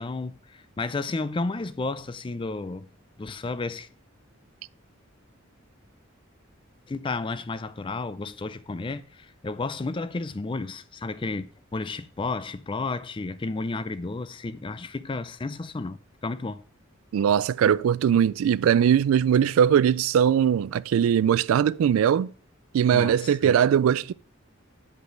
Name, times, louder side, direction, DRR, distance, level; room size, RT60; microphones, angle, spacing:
voice 1, 0.0-2.9 3.2-3.9 6.9-16.6 22.9-23.5, left 3 dB, 25° left, 0.4 m, -32 dB
voice 2, 17.1-22.3 22.7-24.1, right 8 dB, 85° right, 0.3 m, -20 dB
8.1 x 5.4 x 5.1 m
head